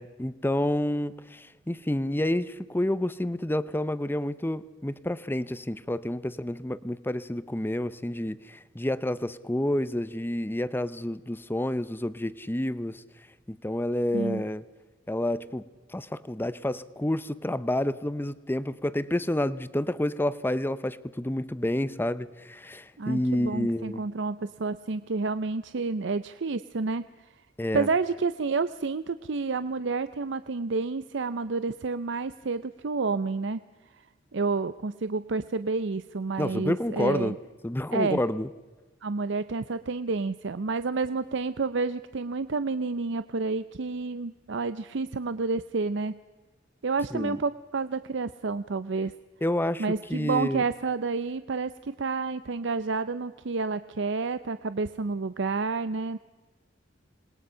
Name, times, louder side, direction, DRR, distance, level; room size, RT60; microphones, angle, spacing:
voice 1, 0.0-13.0 13.5-14.6 15.1-24.0 27.6-27.9 36.4-37.4 37.6-38.5 47.1-47.4 49.4-49.8 50.1-50.6, left 1 dB, 10° left, 0.7 m, -29 dB
voice 2, 14.1-14.4 23.0-27.3 27.7-33.6 34.3-37.3 37.9-38.2 39.0-46.2 46.8-49.1 49.8-56.2, right 4 dB, 65° right, 0.6 m, -29 dB
27.0 x 20.5 x 5.6 m
head